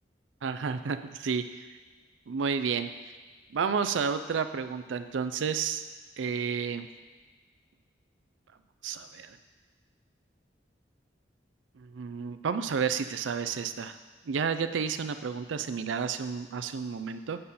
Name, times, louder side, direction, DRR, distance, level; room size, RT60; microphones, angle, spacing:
voice 1, 0.4-1.7 2.3-2.9 3.5-5.8 6.2-6.9 8.8-9.4 11.8-13.9 14.3-17.4, right 6 dB, 90° right, 11 dB, 0.4 m, -31 dB
8.7 x 4.2 x 5.5 m, 1.4 s
head